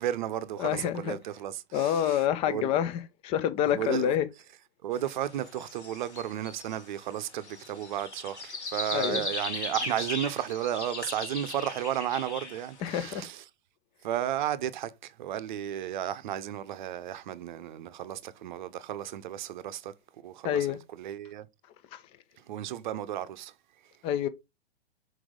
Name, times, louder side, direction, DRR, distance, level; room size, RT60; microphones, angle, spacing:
voice 1, 0.0-2.8 3.7-4.1 4.8-13.4 14.0-21.5 22.4-23.5, right 11 dB, 45° right, 0.8 m, -34 dB
voice 2, 0.6-1.2 1.7-4.3 8.9-9.3 12.8-13.3 20.4-20.8 21.9-22.0 24.0-24.3, left 10 dB, 15° left, 0.5 m, -27 dB
sound 1, 4.9-12.9, left 2 dB, 80° left, 1.8 m, -38 dB
6.1 x 4.7 x 3.7 m
figure-of-eight pair, 105°, 34 cm